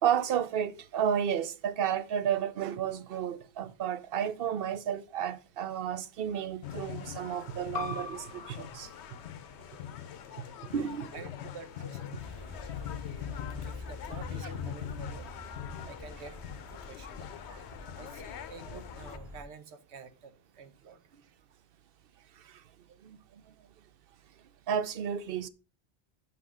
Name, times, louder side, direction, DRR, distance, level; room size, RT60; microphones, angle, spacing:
voice 1, 0.0-8.9 10.3-10.4 10.7-11.1 12.7-12.8 13.3-13.6 17.5-17.6 22.4-22.6 23.0-23.2 24.7-25.5, right 9 dB, 65° right, 0.8 m, -32 dB
sound 1, 6.6-19.2, left 10 dB, 85° left, 0.9 m, -43 dB
sound 2, 7.7-12.9, left 5 dB, 45° left, 0.8 m, -45 dB
voice 2, 10.7-12.3 13.2-15.3 15.8-16.4 16.7-17.2 17.9-21.0, right 4 dB, 90° right, 1.2 m, -49 dB
sound 3, 12.1-19.4, left 2 dB, 20° right, 2.3 m, -45 dB
6.0 x 5.9 x 6.1 m
omnidirectional pair, 1.1 m